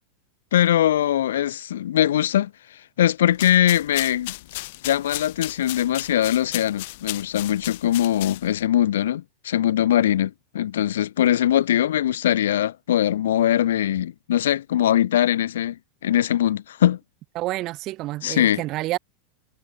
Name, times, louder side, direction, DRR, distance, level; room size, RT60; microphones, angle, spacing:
voice 1, 0.5-2.5 3.0-4.3 4.8-15.8 16.0-17.0 18.2-18.6, left 11 dB, 80° left, 2.3 m, -21 dB
sound 1, 3.3-8.7, left 20 dB, 65° left, 5.7 m, -35 dB
voice 2, 17.3-19.0, right 18 dB, 45° right, 1.4 m, -28 dB
hypercardioid pair, 115°, 0 cm